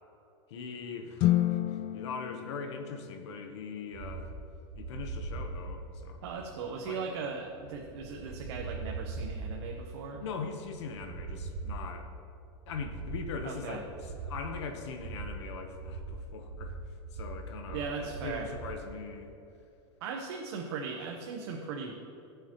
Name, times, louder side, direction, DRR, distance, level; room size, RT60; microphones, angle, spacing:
voice 1, 0.5-4.3 4.8-6.5 6.8-7.0 10.2-12.1 12.7-19.3, left 5 dB, 80° left, 5 dB, 1.1 m, -41 dB
sound 1, 1.2-3.6, left 14 dB, 40° left, 0.3 m, -30 dB
sound 2, 3.9-18.9, right 3 dB, 45° right, 0.9 m, -41 dB
voice 2, 6.2-10.2 13.4-13.8 17.7-18.5 20.0-21.9, right 5 dB, 75° right, 1 dB, 1.0 m, -38 dB
16.5 x 6.9 x 3.0 m, 2.7 s
supercardioid pair, 135°, 14 cm